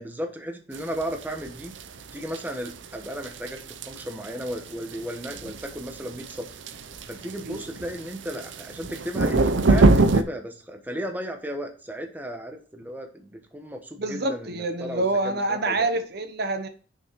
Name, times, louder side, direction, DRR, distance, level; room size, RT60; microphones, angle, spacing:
voice 1, 0.0-1.7 2.1-6.5 7.1-15.8, equal, 10° right, 1.1 m, -35 dB
sound 1, 0.7-10.2, right 2 dB, 90° right, 0.7 m, -24 dB
voice 2, 14.0-16.7, right 2 dB, 60° right, 1.0 m, -26 dB
6.3 x 5.8 x 4.6 m
head